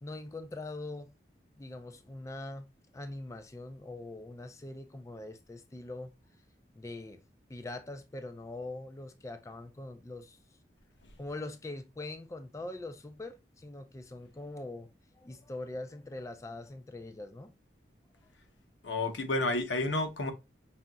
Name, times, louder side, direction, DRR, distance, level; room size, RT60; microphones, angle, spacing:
voice 1, 0.0-1.1 1.6-6.1 6.8-7.2 7.5-10.4 11.2-17.5, left 2 dB, 15° left, 0.3 m, -43 dB
voice 2, 18.8-20.3, left 2 dB, 85° left, 0.9 m, -30 dB
5.4 x 2.8 x 2.3 m
head